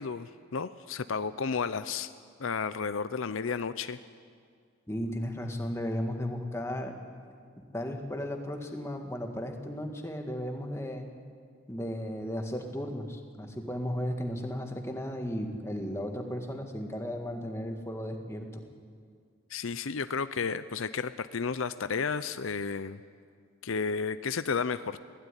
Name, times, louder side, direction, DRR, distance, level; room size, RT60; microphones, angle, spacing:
voice 1, 0.0-2.1 2.4-4.0 19.5-23.0 23.6-25.0, left 5 dB, 75° left, 13 dB, 0.6 m, -32 dB
voice 2, 4.9-6.9 7.7-11.1 11.7-18.6, equal, 15° left, 4 dB, 1.8 m, -35 dB
23.0 x 16.5 x 9.9 m, 2.1 s
head